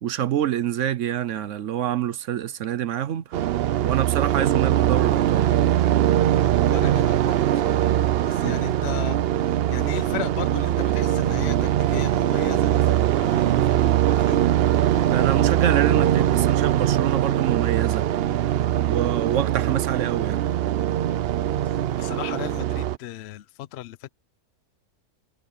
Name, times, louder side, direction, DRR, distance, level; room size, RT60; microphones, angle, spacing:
voice 1, 0.0-3.4 3.8-5.5 8.4-8.6 15.1-18.1 18.9-20.4, right 10 dB, 60° right, 0.9 m, -26 dB
sound 1, 3.3-23.0, right 12 dB, 85° right, 0.5 m, -21 dB
voice 2, 6.7-14.5 21.7-24.1, left 12 dB, 65° left, 0.6 m, -36 dB
omnidirectional pair, 1.6 m